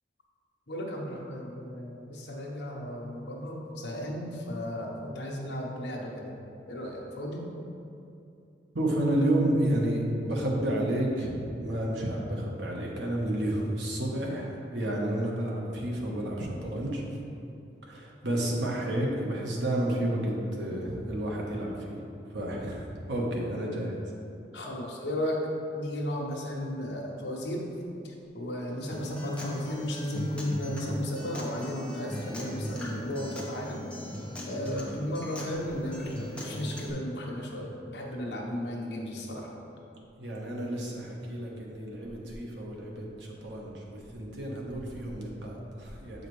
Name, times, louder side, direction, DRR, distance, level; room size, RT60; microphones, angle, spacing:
voice 1, 0.7-6.3 6.7-7.4 24.5-25.4 25.7-27.7 28.3-33.8 34.5-39.5, left 1 dB, 70° left, -1 dB, 0.9 m, -34 dB
voice 2, 8.7-17.0 17.8-22.0 22.3-24.0 40.2-46.3, right 1 dB, 75° right, -2 dB, 1.0 m, -31 dB
Acoustic guitar, 28.9-36.9, equal, 5° left, 0.7 m, -39 dB
7.5 x 4.8 x 3.1 m, 2.6 s
head